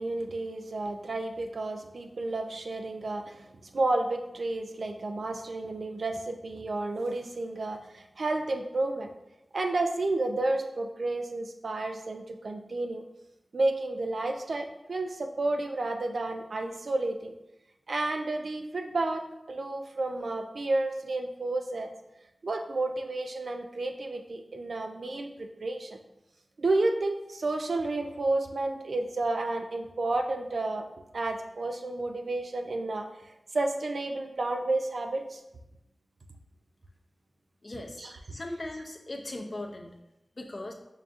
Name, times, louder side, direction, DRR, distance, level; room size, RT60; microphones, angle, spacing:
voice 1, 0.0-9.1 9.5-13.0 13.5-17.3 17.9-21.9 22.4-26.0 26.6-30.8 31.1-33.1 33.5-35.4 38.0-38.4, right 2 dB, 75° right, 4 dB, 0.4 m, -31 dB
voice 2, 37.6-38.0 38.3-40.0 40.4-40.7, left 1 dB, 45° left, 1 dB, 0.5 m, -38 dB
5.4 x 2.4 x 2.5 m, 0.91 s
wide cardioid pair, 75°, 0 cm